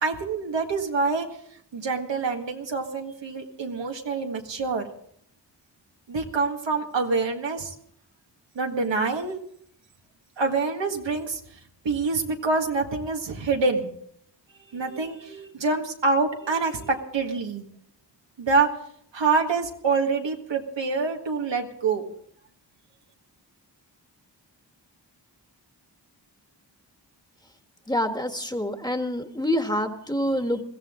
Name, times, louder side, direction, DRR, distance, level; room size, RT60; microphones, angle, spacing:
voice 1, 0.0-1.3 1.7-4.9 6.1-7.7 8.6-9.4 10.4-11.4 11.9-13.9 14.7-17.6 18.4-18.7 19.1-22.1, right 4 dB, 90° right, 2 dB, 1.8 m, -26 dB
voice 2, 27.9-30.6, left 1 dB, 10° left, 6 dB, 1.5 m, -26 dB
21.5 x 15.0 x 3.7 m, 0.65 s
cardioid pair, 60°, 43 cm